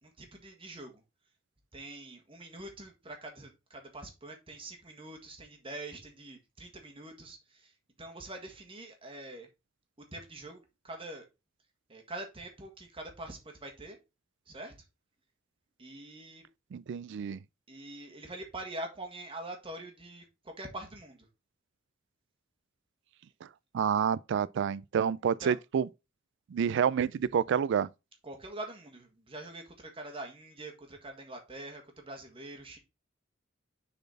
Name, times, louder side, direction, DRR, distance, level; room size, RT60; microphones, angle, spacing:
voice 1, 0.0-1.0 1.7-9.5 10.0-11.2 11.9-14.0 14.5-14.7 15.8-16.4 17.7-21.3 25.4-25.5 28.2-32.8, right 2 dB, 25° right, 1.6 m, -44 dB
voice 2, 16.7-17.4 23.7-25.9 26.5-27.9, right 7 dB, 60° right, 0.3 m, -28 dB
6.6 x 4.2 x 4.0 m
head